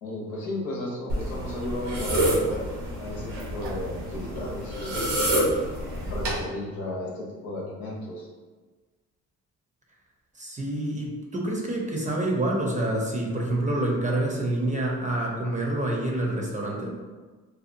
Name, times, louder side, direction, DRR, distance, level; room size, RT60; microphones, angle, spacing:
voice 1, 0.0-2.7 3.0-5.2 6.0-8.3, left 1 dB, 70° left, -3 dB, 0.9 m, -34 dB
sound 1, 1.1-6.4, right 1 dB, 90° right, 1.0 m, -28 dB
voice 2, 10.3-16.9, right 1 dB, 20° right, -1 dB, 0.7 m, -27 dB
2.8 x 2.3 x 2.6 m, 1.3 s
supercardioid pair, 55°, 35 cm